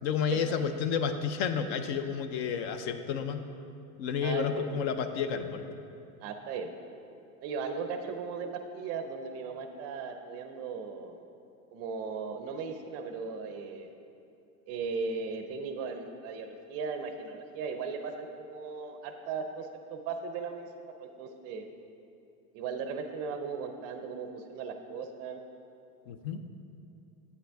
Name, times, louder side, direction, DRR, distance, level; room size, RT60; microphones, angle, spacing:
voice 1, 0.0-3.4 4.0-5.6 26.1-26.4, left 6 dB, 50° left, 9 dB, 0.6 m, -31 dB
voice 2, 4.2-4.7 6.2-6.7 7.4-11.2 11.7-13.9 14.7-21.7 22.5-25.4, right 5 dB, 35° right, 6 dB, 0.5 m, -37 dB
8.0 x 7.6 x 3.4 m, 2.6 s
supercardioid pair, 125°, 45 cm